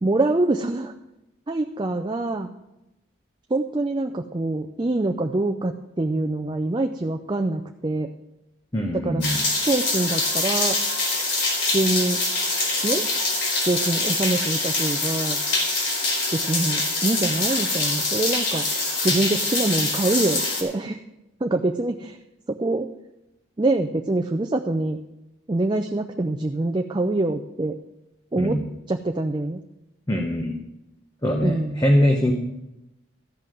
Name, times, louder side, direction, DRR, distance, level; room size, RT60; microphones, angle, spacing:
voice 1, 0.0-0.9 1.5-2.5 3.5-8.1 8.9-10.8 11.7-12.2 12.8-13.1 13.6-15.4 16.3-18.7 19.0-21.0 21.4-22.2 22.5-22.9 23.6-25.0 25.5-27.8 28.3-28.6 28.9-29.6 31.4-31.8, right 2 dB, 20° right, 5 dB, 0.4 m, -25 dB
voice 2, 8.7-9.4 28.4-28.6 30.1-30.6 31.2-32.3, left 1 dB, 20° left, 1 dB, 1.0 m, -22 dB
sound 1, 9.2-20.6, left 2 dB, 65° left, 3.9 m, -24 dB
14.0 x 5.6 x 7.7 m, 0.93 s
head